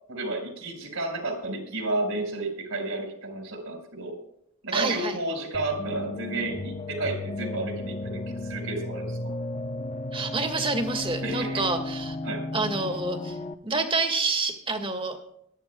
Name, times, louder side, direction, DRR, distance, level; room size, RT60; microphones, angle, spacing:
voice 1, 0.1-4.2 4.6-9.2 11.2-11.6 12.2-12.4, right 2 dB, 70° right, 2 dB, 5.0 m, -32 dB
voice 2, 4.7-5.2 10.1-12.2 12.5-13.4 13.6-15.2, right 3 dB, 25° right, 5 dB, 1.9 m, -28 dB
sound 1, 5.5-13.5, left 2 dB, 30° left, 0.8 m, -34 dB
22.0 x 13.0 x 2.3 m, 0.73 s
head